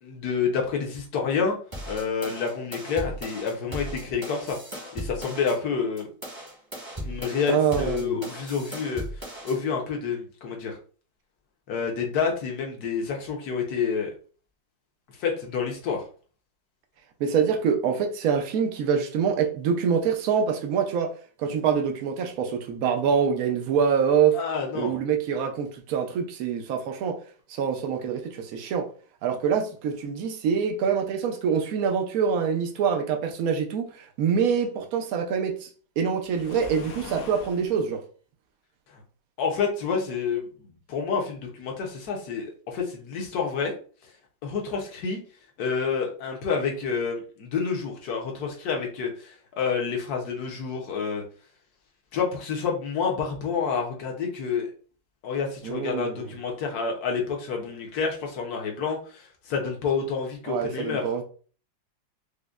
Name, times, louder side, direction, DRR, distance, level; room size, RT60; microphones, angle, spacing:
voice 1, 0.0-1.6 1.9-4.6 4.9-6.1 7.0-10.8 11.7-14.1 15.2-16.0 24.3-25.0 39.4-40.5 40.9-43.7 44.4-45.2 45.6-51.2 52.1-54.7 55.2-61.1, left 5 dB, 65° left, 1.1 m, -28 dB
sound 1, 1.7-5.6 6.0-9.6, right 1 dB, 20° right, 0.6 m, -37 dB
voice 2, 7.5-8.2 17.2-21.1 21.4-24.4 24.7-27.2 27.5-28.9 29.2-35.7 36.0-38.0 55.6-56.3 60.5-61.2, right 7 dB, 80° right, 0.8 m, -25 dB
Waves surf, 36.2-37.7, left 4 dB, 85° left, 0.7 m, -41 dB
5.0 x 2.1 x 2.3 m
omnidirectional pair, 2.1 m